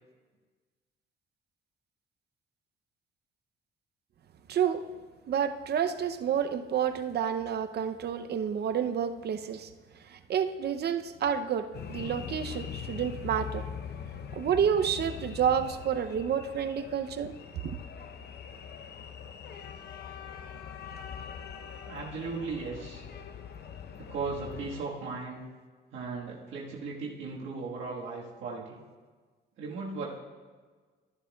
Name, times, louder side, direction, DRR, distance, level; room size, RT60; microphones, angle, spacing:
voice 1, 4.5-4.8 5.3-9.7 10.1-13.6 14.3-17.3 17.6-17.8, right 8 dB, 55° right, 9 dB, 0.6 m, -29 dB
sound 1, 11.7-24.8, left 7 dB, 55° left, 0.7 m, -42 dB
voice 2, 21.9-23.0 24.0-25.4 25.9-28.8 29.6-30.2, right 4 dB, 75° right, -4 dB, 1.5 m, -37 dB
12.5 x 11.0 x 2.3 m, 1.4 s
cardioid pair, 90°, 20 cm